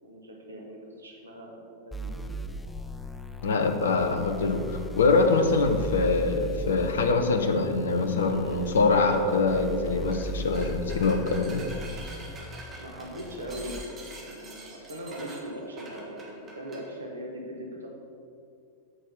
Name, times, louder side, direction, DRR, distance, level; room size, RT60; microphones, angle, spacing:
voice 1, 0.0-2.3 12.8-17.9, equal, 75° right, -1 dB, 1.8 m, -40 dB
sound 1, 1.9-13.8, right 1 dB, 5° left, 0.5 m, -38 dB
voice 2, 3.4-11.6, left 3 dB, 65° left, 5 dB, 0.9 m, -24 dB
sound 2, 10.0-10.3 10.5-16.9, right 2 dB, 20° right, 2.3 m, -45 dB
8.8 x 6.4 x 6.8 m, 2.4 s
figure-of-eight pair, 90°, 0 cm